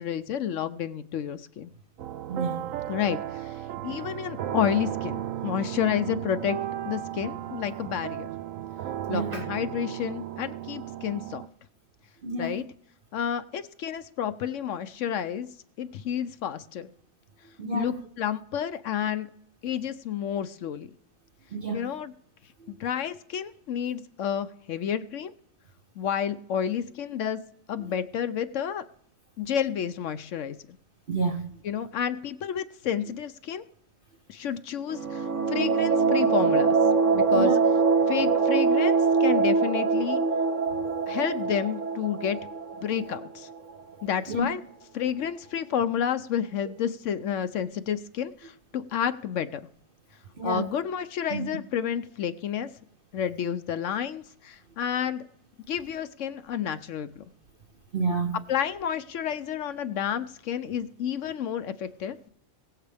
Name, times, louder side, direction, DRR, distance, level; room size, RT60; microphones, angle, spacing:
voice 1, 0.0-1.7 2.9-3.5 3.8-6.6 6.8-8.3 9.1-11.4 12.4-12.6 13.1-15.5 15.8-16.9 17.7-19.3 19.6-20.9 21.7-22.1 22.7-25.3 26.0-27.4 27.7-28.9 29.4-30.6 31.6-33.6 34.3-36.8 37.1-37.6 38.1-40.2 41.1-42.4 42.8-43.5 44.0-44.6 44.9-49.6 50.4-52.7 53.1-55.2 55.7-57.2 58.5-62.3, left 9 dB, 70° left, 1.0 m, -30 dB
sound 1, 2.0-11.5, right 11 dB, 80° right, 1.0 m, -35 dB
voice 2, 2.3-2.6 9.1-9.4 12.2-12.6 17.6-18.0 21.5-21.9 22.6-22.7 31.1-31.4 37.3-37.6 44.3-44.5 50.4-50.7 51.3-51.5 57.9-58.4, right 3 dB, 45° right, 1.0 m, -29 dB
sound 2, 34.9-43.5, right 4 dB, 65° right, 1.4 m, -23 dB
22.0 x 7.4 x 3.4 m
omnidirectional pair, 1.4 m